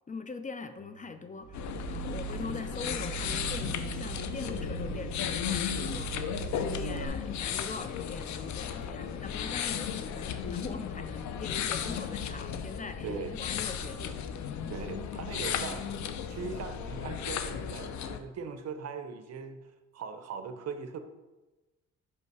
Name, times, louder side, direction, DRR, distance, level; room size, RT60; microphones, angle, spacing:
voice 1, 0.1-14.8, left 4 dB, 25° left, 9 dB, 0.5 m, -42 dB
sound 1, 0.8-16.1, right 2 dB, 90° left, 1.4 m, -59 dB
sound 2, 1.4-7.1, right 11 dB, 30° right, 1.2 m, -41 dB
sound 3, 1.5-18.2, left 8 dB, 70° left, 0.6 m, -35 dB
voice 2, 13.0-13.3 14.7-15.9 16.3-19.6 19.9-21.0, right 5 dB, 55° right, 8 dB, 0.8 m, -39 dB
5.5 x 5.3 x 4.7 m, 1.1 s
cardioid pair, 90°, 30 cm